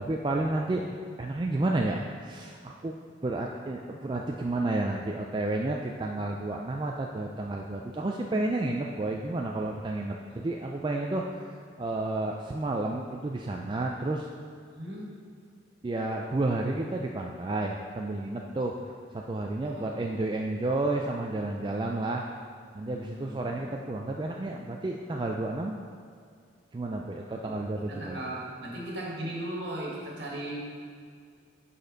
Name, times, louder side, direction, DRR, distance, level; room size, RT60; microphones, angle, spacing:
voice 1, 0.0-3.0 3.2-11.5 11.8-14.3 15.8-18.8 19.1-22.3 22.7-25.8 26.7-28.2, right 2 dB, 25° right, 0 dB, 0.3 m, -31 dB
voice 2, 14.7-15.1 19.6-20.1 22.8-23.6 27.3-27.5 27.9-30.6, right 1 dB, 65° right, -4 dB, 1.7 m, -38 dB
7.8 x 4.2 x 5.1 m, 2.2 s
head